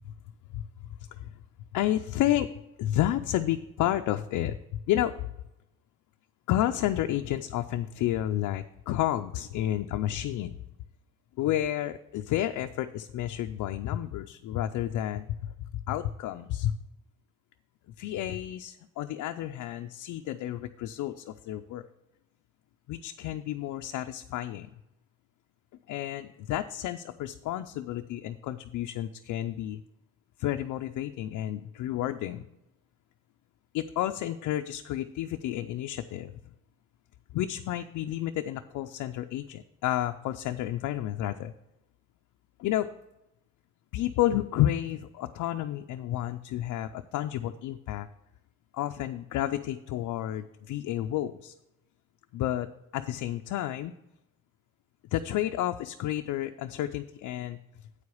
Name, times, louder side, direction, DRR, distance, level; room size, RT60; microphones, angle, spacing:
voice 1, 0.5-1.3 1.7-2.5 2.8-5.1 6.5-10.6 11.4-16.7 18.0-21.8 22.9-24.7 25.9-29.8 30.4-32.5 33.7-36.3 37.3-41.5 42.6-42.9 43.9-48.1 48.7-51.5 52.3-52.7 52.9-53.9 55.1-57.6, left 13 dB, 85° left, 6 dB, 0.5 m, -31 dB
8.4 x 4.8 x 6.9 m, 0.90 s
cardioid pair, 90°, 30 cm